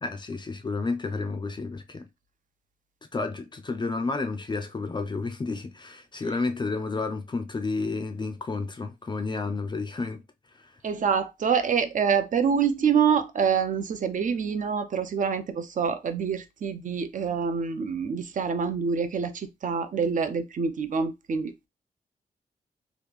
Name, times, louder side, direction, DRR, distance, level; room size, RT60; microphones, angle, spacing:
voice 1, 0.0-2.1 3.1-10.2 10.5-10.8, left 3 dB, 30° left, 0.4 m, -31 dB
voice 2, 10.8-21.5, right 6 dB, 55° right, 0.5 m, -26 dB
3.1 x 2.4 x 3.4 m
wide cardioid pair, 140°, 16 cm